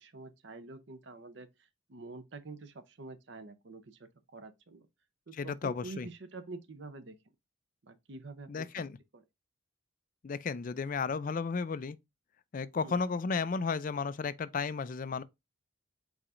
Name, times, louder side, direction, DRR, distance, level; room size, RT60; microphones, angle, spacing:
voice 1, 0.0-4.9 5.3-7.2 7.8-8.9 9.1-9.2 12.8-13.0, right 3 dB, 60° right, 0.7 m, -47 dB
voice 2, 5.4-6.1 8.5-8.9 10.2-12.0 12.5-15.2, left 5 dB, 40° left, 0.3 m, -33 dB
4.8 x 4.0 x 2.5 m
head